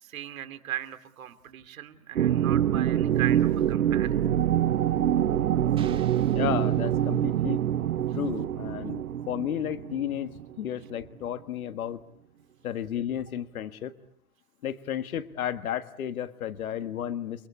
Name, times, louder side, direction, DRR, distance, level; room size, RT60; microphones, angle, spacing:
voice 1, 0.0-4.2, right 12 dB, 70° right, 11 dB, 2.9 m, -38 dB
sound 1, 2.2-10.7, right 11 dB, 90° right, 1.1 m, -25 dB
sound 2, 5.8-7.5, right 7 dB, 10° right, 2.2 m, -51 dB
voice 2, 6.3-7.6 8.1-10.3 10.6-12.0 12.6-13.9 14.6-17.5, left 10 dB, 75° left, 10 dB, 1.7 m, -32 dB
29.5 x 22.5 x 8.6 m, 0.66 s
hypercardioid pair, 155°, 42 cm